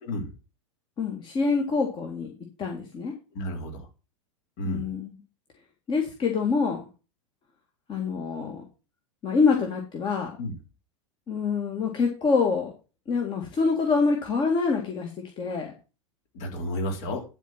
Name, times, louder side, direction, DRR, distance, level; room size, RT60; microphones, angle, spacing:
voice 1, 0.0-0.3 3.3-3.9 4.6-4.9 10.4-10.5 16.3-17.2, left 1 dB, 50° left, 3 dB, 3.3 m, -31 dB
voice 2, 1.0-2.3 2.6-3.1 4.7-5.2 5.9-6.8 7.9-8.6 9.2-10.3 11.3-12.7 13.1-15.1 15.4-15.7, left 4 dB, 30° left, 2 dB, 2.1 m, -25 dB
11.5 x 4.4 x 5.9 m, 0.31 s
figure-of-eight pair, 95°, 16 cm